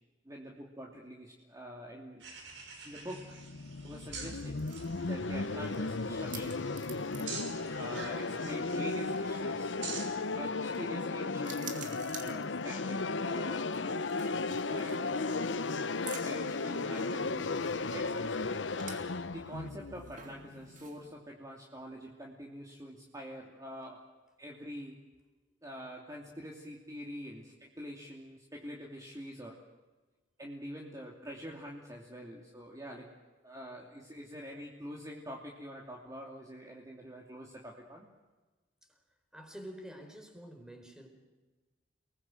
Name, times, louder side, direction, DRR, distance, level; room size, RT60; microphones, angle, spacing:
voice 1, 0.2-2.2 2.8-3.2 3.8-4.6 5.1-6.6 7.8-9.8 10.4-14.1 14.6-15.5 16.2-18.7 19.3-24.0 24.4-25.0 25.6-29.6 30.4-33.1 33.4-38.1, equal, 20° right, -1 dB, 2.8 m, -45 dB
sound 1, 2.2-10.2, right 4 dB, 80° right, 5.9 m, -47 dB
sound 2, 3.1-20.9, left 3 dB, 80° left, 0.9 m, -35 dB
sound 3, 4.1-21.1, right 6 dB, 45° right, 2.9 m, -52 dB
voice 2, 39.3-41.1, equal, 5° right, 5 dB, 4.5 m, -47 dB
30.0 x 20.0 x 7.8 m, 1.2 s
head